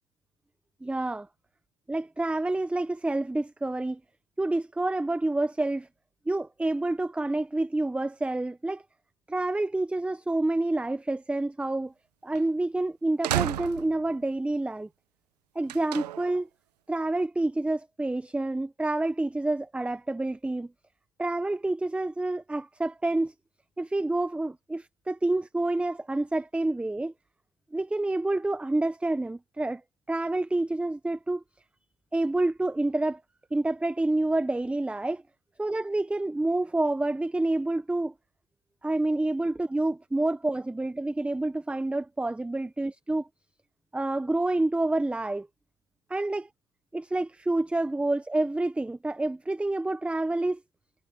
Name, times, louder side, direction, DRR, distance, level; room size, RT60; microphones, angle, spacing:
voice 1, 0.8-1.3 1.9-4.0 4.4-5.9 6.3-8.8 9.3-11.9 12.2-14.9 15.5-16.5 16.9-20.7 21.2-23.3 23.8-27.1 27.7-29.8 30.1-31.4 32.1-33.2 33.5-35.2 35.6-38.1 38.8-43.3 43.9-45.5 46.1-46.5 46.9-50.6, right 2 dB, 5° right, 1.0 m, -28 dB
sound 1, 12.4-12.5 13.2-14.2 15.7-16.4, right 13 dB, 80° right, 0.9 m, -31 dB
hypercardioid pair, 100°, 20 cm